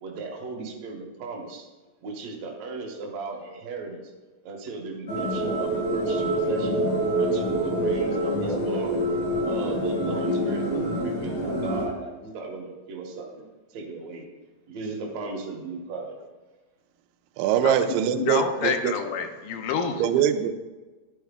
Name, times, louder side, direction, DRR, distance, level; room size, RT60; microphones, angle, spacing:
voice 1, 0.0-1.7 2.0-4.0 4.4-6.8 7.2-9.0 9.4-13.5 13.7-14.3 14.7-16.2, right 3 dB, 65° right, 1 dB, 1.9 m, -36 dB
sound 1, 5.1-11.9, right 1 dB, 50° left, 1.1 m, -26 dB
voice 2, 17.4-19.0 20.0-20.5, right 10 dB, 80° right, 9 dB, 2.2 m, -23 dB
voice 3, 18.2-20.1, left 6 dB, 80° left, 5 dB, 2.3 m, -28 dB
11.0 x 4.4 x 3.6 m, 1.3 s
omnidirectional pair, 4.1 m